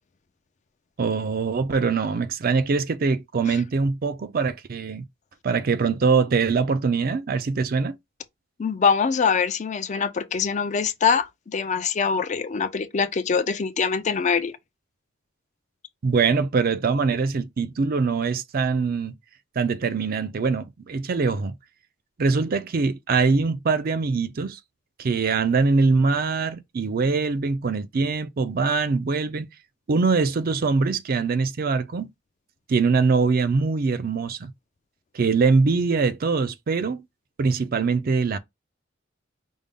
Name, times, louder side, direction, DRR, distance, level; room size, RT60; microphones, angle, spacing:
voice 1, 1.0-5.0 5.4-8.0 16.0-19.1 19.6-21.5 22.2-24.6 25.0-29.5 29.9-32.1 32.7-34.5 35.1-37.0 37.4-38.4, right 4 dB, 50° right, 0.4 m, -23 dB
voice 2, 8.6-14.5, left 6 dB, 40° left, 0.4 m, -24 dB
5.2 x 2.0 x 3.6 m
head